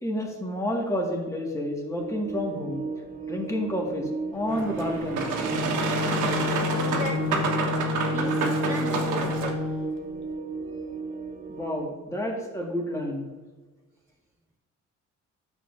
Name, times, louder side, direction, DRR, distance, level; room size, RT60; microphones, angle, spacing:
voice 1, 0.0-2.8 3.3-5.3 11.5-13.3, left 1 dB, 10° left, 0 dB, 1.9 m, -30 dB
sound 1, 1.9-11.8, right 4 dB, 30° right, 0.6 m, -35 dB
Boat Water vehicle, 4.5-9.5, right 4 dB, 90° right, 1.4 m, -29 dB
Wind instrument woodwind instrument, 5.4-9.9, left 6 dB, 45° left, 1.3 m, -30 dB
voice 2, 6.8-7.5 8.1-9.7, equal, 15° right, -7 dB, 1.9 m, -36 dB
9.9 x 7.1 x 2.7 m, 1.3 s
cardioid pair, 90°, 30 cm